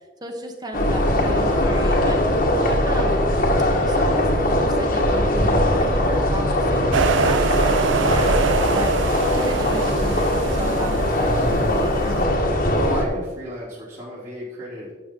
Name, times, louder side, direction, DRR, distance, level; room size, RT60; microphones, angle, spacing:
voice 1, 0.2-3.3 3.8-12.3, right 1 dB, 20° right, 3 dB, 1.3 m, -34 dB
sound 1, 0.7-13.1, left 1 dB, 50° left, 1.7 m, -20 dB
sound 2, 6.9-11.9, right 6 dB, 80° right, 0.4 m, -25 dB
voice 2, 12.8-14.9, equal, 45° right, -10 dB, 3.4 m, -33 dB
12.5 x 8.0 x 3.9 m, 1.3 s
head